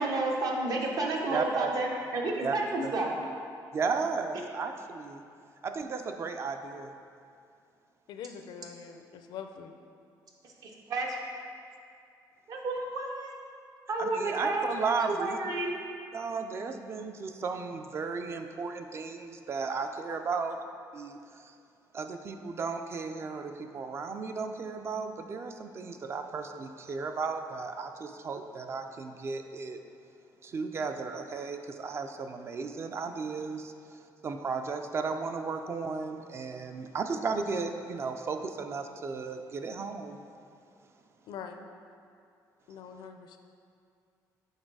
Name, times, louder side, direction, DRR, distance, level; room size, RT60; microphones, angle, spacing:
voice 1, 0.0-3.1 10.9-11.1 12.5-13.4 13.9-15.8, right 2 dB, 60° right, 0 dB, 0.9 m, -31 dB
voice 2, 1.3-1.7 2.4-2.6 2.8-2.9 3.7-5.2 5.6-6.9 14.0-15.4 16.1-20.6 20.9-21.5 21.9-29.8 30.4-40.2, right 4 dB, 35° right, 6 dB, 0.4 m, -34 dB
voice 3, 8.1-9.7 41.3-41.6 42.7-43.4, left 7 dB, 80° left, 6 dB, 0.5 m, -43 dB
6.5 x 4.0 x 4.6 m, 2.4 s
cardioid pair, 150°, 7 cm